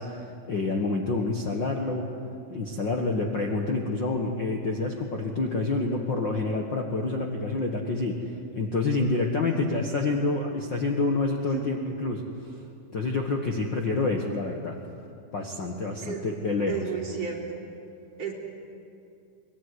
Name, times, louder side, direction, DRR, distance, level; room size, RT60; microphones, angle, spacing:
voice 1, 0.0-2.1 2.5-8.2 8.5-12.2 12.9-14.8 15.3-16.7, left 3 dB, 45° left, 1 dB, 1.7 m, -28 dB
voice 2, 9.4-9.8 11.5-11.6 16.0-16.2 16.7-17.6 18.2-18.3, right 6 dB, 45° right, -2 dB, 4.4 m, -33 dB
23.0 x 21.5 x 9.8 m, 2.5 s
omnidirectional pair, 3.9 m